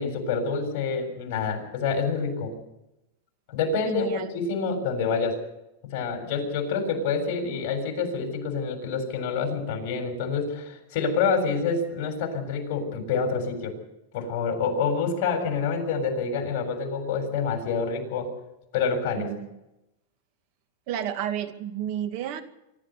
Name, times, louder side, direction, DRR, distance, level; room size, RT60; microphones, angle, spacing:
voice 1, 0.0-2.5 3.5-5.4 5.8-13.8 14.1-18.3 18.7-19.3, left 5 dB, 50° left, 4 dB, 7.1 m, -27 dB
voice 2, 3.8-4.3 19.1-19.5 20.9-22.4, right 10 dB, 50° right, 8 dB, 2.2 m, -31 dB
25.0 x 12.5 x 8.3 m, 0.90 s
supercardioid pair, 150°, 0 cm